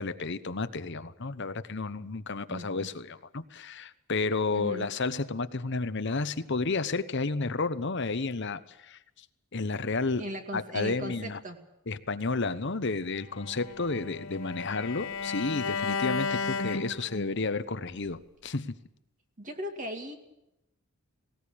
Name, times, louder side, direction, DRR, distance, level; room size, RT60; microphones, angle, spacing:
voice 1, 0.0-9.0 9.5-10.3 10.5-11.4 11.9-18.7, left 3 dB, 55° left, 11 dB, 1.0 m, -31 dB
voice 2, 2.5-2.9 4.5-4.9 10.2-11.6 19.4-20.1, equal, 35° right, 5 dB, 2.4 m, -38 dB
Bowed string instrument, 13.3-17.5, left 4 dB, 70° left, 1.7 m, -34 dB
19.0 x 18.0 x 8.6 m, 0.88 s
head